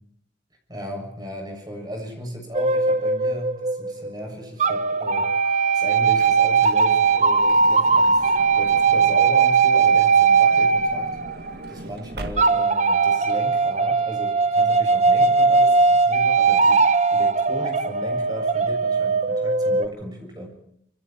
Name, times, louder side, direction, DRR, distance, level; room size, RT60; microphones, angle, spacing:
voice 1, 0.7-11.2 11.7-16.8 17.1-20.5, equal, 20° right, 2 dB, 7.1 m, -36 dB
sound 1, 2.5-4.1 4.6-11.7 12.4-19.9, right 4 dB, 35° right, 0.9 m, -19 dB
Truck / Door, 5.8-9.3 10.3-12.9 13.6-13.7 13.8-14.0, right 1 dB, 55° right, 1.9 m, -41 dB
27.0 x 26.0 x 4.5 m, 0.70 s
head